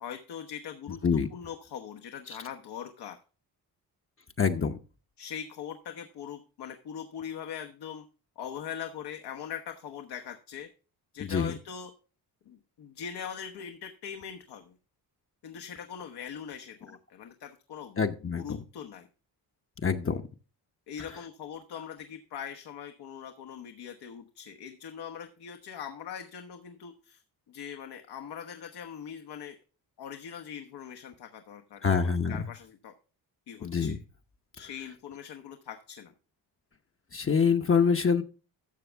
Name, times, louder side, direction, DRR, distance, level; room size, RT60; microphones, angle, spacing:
voice 1, 0.0-3.2 5.2-8.0 8.4-10.7 11.1-11.9 12.5-14.7 15.4-19.1 20.9-27.2 27.5-29.6 30.0-32.9 33.5-34.0 34.5-36.1, left 8 dB, 70° left, 5 dB, 1.1 m, -41 dB
voice 2, 4.4-4.8 11.2-11.5 18.0-18.6 19.8-20.2 31.8-32.5 33.6-34.0 37.1-38.2, left 6 dB, 30° left, 5 dB, 0.9 m, -25 dB
12.5 x 6.9 x 3.4 m, 0.36 s
cardioid pair, 80°, 41 cm